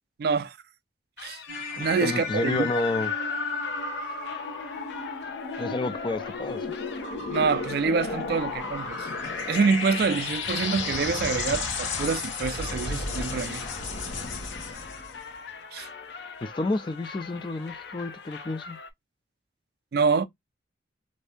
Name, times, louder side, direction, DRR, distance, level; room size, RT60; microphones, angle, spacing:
voice 1, 0.2-0.6 1.2-1.4 1.8-2.7 7.3-9.1 9.5-13.8 15.7-15.9 19.9-20.3, right 5 dB, 55° right, 0.3 m, -26 dB
sound 1, 1.2-18.9, left 5 dB, 65° left, 0.6 m, -43 dB
sound 2, 1.5-15.2, left 4 dB, 90° left, 1.0 m, -33 dB
voice 2, 2.0-3.1 5.6-6.7 16.4-18.8, left 2 dB, 25° left, 0.3 m, -30 dB
2.7 x 2.6 x 3.4 m
head